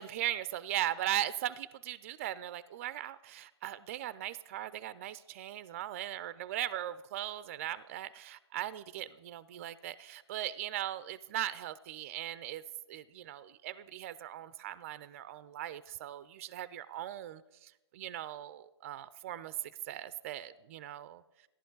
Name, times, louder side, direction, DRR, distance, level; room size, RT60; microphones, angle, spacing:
voice 1, 0.0-12.6 12.9-19.5 19.9-21.2, right 12 dB, 30° right, 16 dB, 0.3 m, -39 dB
14.5 x 11.0 x 3.9 m, 1.0 s
hypercardioid pair, 150°, 15 cm